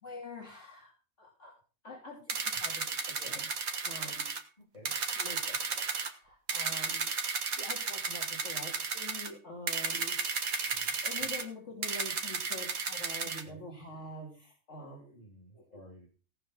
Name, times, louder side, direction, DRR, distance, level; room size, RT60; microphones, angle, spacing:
voice 1, 0.0-0.9 1.2-1.5 1.8-4.3 5.2-10.8 11.0-15.2 15.5-15.9, left 1 dB, 55° left, -2 dB, 3.4 m, -46 dB
sound 1, 2.3-4.4 4.9-6.1 6.5-9.3 9.7-11.4 11.8-13.4, right 5 dB, 85° right, 1.9 m, -34 dB
voice 2, 4.6-4.9 10.7-10.9 13.2-13.6 15.1-16.1, equal, 30° left, -4 dB, 3.5 m, -54 dB
17.5 x 6.1 x 6.2 m, 0.38 s
omnidirectional pair, 1.4 m